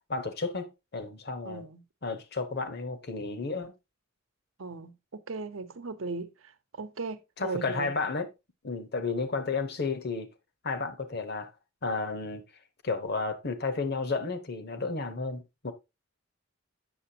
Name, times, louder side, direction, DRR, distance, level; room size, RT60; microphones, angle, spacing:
voice 1, 0.1-1.7 2.0-3.7 7.4-8.3 8.6-10.3 10.6-11.5 11.8-12.4 12.8-15.7, left 4 dB, 55° left, 1.0 m, -32 dB
voice 2, 1.4-1.8 4.6-7.9, right 3 dB, 90° right, 0.8 m, -38 dB
8.4 x 6.8 x 2.8 m
head